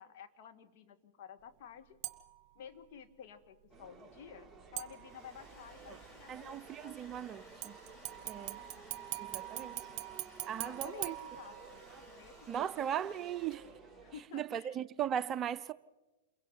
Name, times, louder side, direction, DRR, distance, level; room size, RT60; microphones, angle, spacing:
voice 1, 0.0-2.0 2.5-7.0 8.1-8.9 9.4-10.0 10.6-12.7 14.0-14.8, left 8 dB, 55° left, 1.9 m, -53 dB
sound 1, 2.0-2.5 4.8-5.5 7.6-12.0 12.4-12.5, right 15 dB, 45° right, 1.5 m, -43 dB
sound 2, 3.7-14.2, right 4 dB, ahead, 2.8 m, -55 dB
Domestic sounds home sounds, 4.7-13.9, equal, 20° left, 5.0 m, -59 dB
voice 2, 6.3-7.8 8.2-8.6 9.2-9.8 10.4-11.1 12.5-13.7 14.3-15.7, right 9 dB, 30° right, 0.6 m, -38 dB
29.0 x 22.5 x 4.1 m
hypercardioid pair, 105°, 0 cm